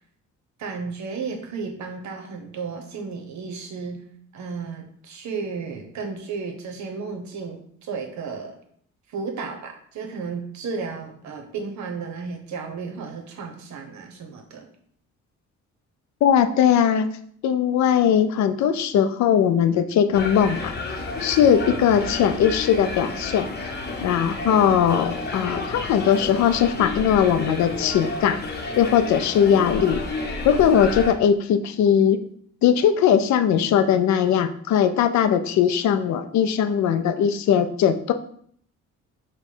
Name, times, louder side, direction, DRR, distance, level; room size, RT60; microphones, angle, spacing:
voice 1, 0.6-4.0 4.3-8.5 9.1-14.7, right 4 dB, 70° right, 4 dB, 0.9 m, -33 dB
voice 2, 16.2-17.1 17.4-23.5 24.0-28.4 28.8-30.0 30.4-32.2 32.6-38.1, left 8 dB, 65° left, 9 dB, 0.5 m, -20 dB
sound 1, 20.1-31.1, left 3 dB, 35° left, 0.9 m, -31 dB
4.5 x 2.2 x 4.4 m, 0.62 s
cardioid pair, 90°, 30 cm